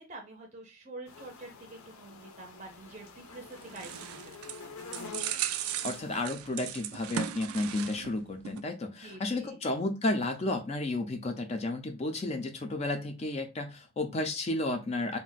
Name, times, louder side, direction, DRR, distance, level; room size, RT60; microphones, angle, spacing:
voice 1, 0.0-4.3 4.6-4.8 9.0-9.6, right 2 dB, 30° right, 2 dB, 0.5 m, -47 dB
sound 1, 1.1-6.2, left 4 dB, 85° left, 0.5 m, -47 dB
sound 2, 3.2-8.2 8.4-8.6, right 11 dB, 90° right, 0.3 m, -37 dB
voice 2, 5.8-15.2, left 2 dB, 30° left, 5 dB, 0.3 m, -32 dB
2.4 x 2.1 x 3.8 m, 0.25 s
head